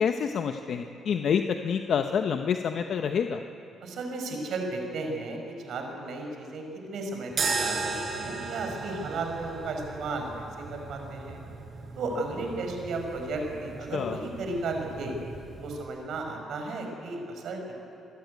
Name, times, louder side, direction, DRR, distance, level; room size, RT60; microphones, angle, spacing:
voice 1, 0.0-3.4 13.9-14.2, left 7 dB, 60° left, 6 dB, 0.9 m, -27 dB
voice 2, 3.8-5.4 5.6-11.4 11.9-15.1 15.6-17.8, right 2 dB, 70° right, 3 dB, 5.1 m, -34 dB
sound 1, 7.3-15.8, right 4 dB, 50° right, 5.2 m, -36 dB
26.0 x 13.5 x 9.5 m, 2.7 s
cardioid pair, 90°, 0 cm